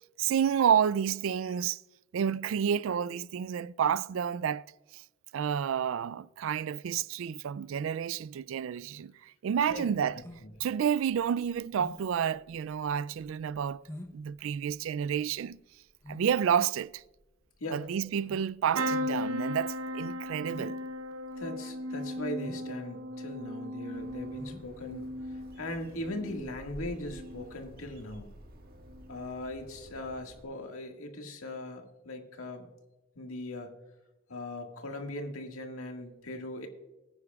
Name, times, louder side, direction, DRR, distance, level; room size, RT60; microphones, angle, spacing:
voice 1, 0.2-1.8 2.1-4.6 4.9-5.0 5.3-10.2 10.6-13.8 14.1-15.6 16.1-17.0 17.7-20.8, right 8 dB, 70° right, 0.3 m, -30 dB
sound 1, 9.9-26.0, left 1 dB, 15° left, 0.8 m, -50 dB
sound 2, 18.7-26.6 27.0-27.6 28.8-29.0 29.3-29.4, equal, 85° right, 0.8 m, -37 dB
voice 2, 21.3-25.1 25.6-28.3 29.1-32.7 33.2-33.7 34.3-36.7, left 1 dB, 90° left, 1.8 m, -39 dB
Bird, 23.9-30.4, equal, 45° right, 1.6 m, -51 dB
19.5 x 9.8 x 2.4 m
head